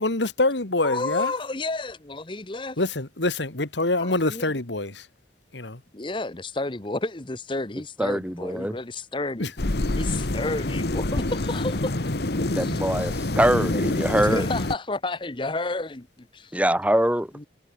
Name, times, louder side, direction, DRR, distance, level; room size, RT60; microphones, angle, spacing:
voice 1, 0.0-1.3 2.8-5.0 5.5-5.8 9.4-9.5, left 2 dB, 75° left, 2.4 m, -25 dB
voice 2, 0.8-2.8 4.0-4.5 5.9-9.5 10.0-11.9 12.3-12.8 13.7-13.8 14.2-16.5 17.3-17.4, left 2 dB, 25° left, 1.0 m, -31 dB
voice 3, 8.0-8.7 12.6-14.5 16.5-17.3, right 1 dB, 10° right, 2.9 m, -23 dB
sound 1, 9.6-14.7, left 2 dB, 60° left, 1.3 m, -26 dB
head